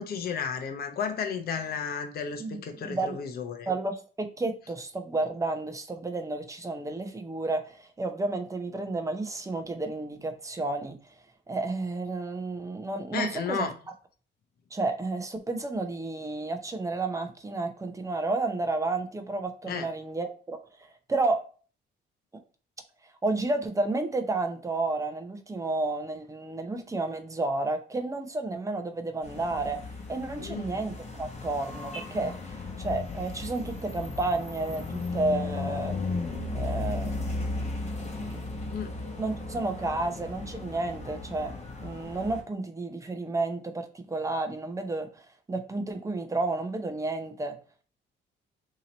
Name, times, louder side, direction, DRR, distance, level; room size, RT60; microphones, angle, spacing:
voice 1, 0.0-3.7 13.1-13.7 19.7-19.9 30.4-30.7 38.7-38.9, left 6 dB, 50° left, 6 dB, 0.6 m, -33 dB
voice 2, 2.4-3.2 3.7-11.0 11.5-13.7 14.7-20.6 21.1-21.4 23.2-29.8 30.1-32.3 32.8-36.0 36.5-37.6 38.2-38.4 39.2-41.5 41.8-47.6, right 2 dB, 15° right, 6 dB, 0.6 m, -31 dB
sound 1, 29.2-42.4, left 3 dB, 35° left, 1.0 m, -35 dB
2.8 x 2.8 x 3.9 m, 0.40 s
cardioid pair, 90°, 20 cm